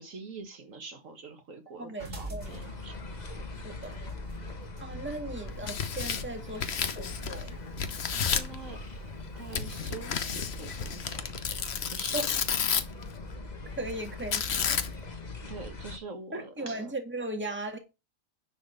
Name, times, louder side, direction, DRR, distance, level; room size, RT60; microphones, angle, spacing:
voice 1, 0.0-3.1 8.1-8.8 9.3-11.3 11.8-12.3 15.5-16.9, right 4 dB, 70° right, 1.8 m, -45 dB
voice 2, 1.8-2.6 3.6-4.0 4.8-7.6 12.1-12.3 13.8-14.4 14.7-14.8 16.3-17.8, right 2 dB, 10° right, 1.7 m, -37 dB
sound 1, 2.0-8.1, right 2 dB, 45° right, 3.0 m, -46 dB
sound 2, 2.4-16.0, left 2 dB, 35° left, 1.3 m, -41 dB
Tearing, 5.5-7.5 7.8-8.6 9.5-13.0 14.3-15.1, left 7 dB, 55° left, 1.1 m, -31 dB
10.5 x 4.1 x 6.5 m
omnidirectional pair, 1.4 m